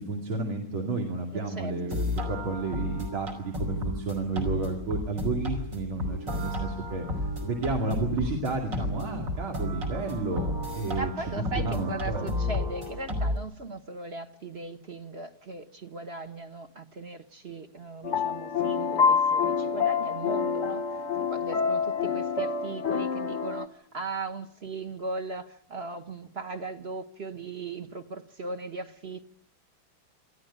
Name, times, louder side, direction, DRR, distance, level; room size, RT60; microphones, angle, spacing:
voice 1, 0.0-7.1 7.4-12.3, right 3 dB, 85° right, 1 dB, 3.4 m, -31 dB
voice 2, 1.5-2.3 10.9-20.8 21.2-29.3, right 3 dB, 35° right, 7 dB, 1.2 m, -38 dB
sound 1, 1.6-13.4, left 1 dB, 60° right, 5.6 m, -32 dB
sound 2, 18.0-23.7, left 6 dB, 45° left, 1.0 m, -27 dB
27.5 x 13.5 x 9.8 m, 0.75 s
omnidirectional pair, 2.2 m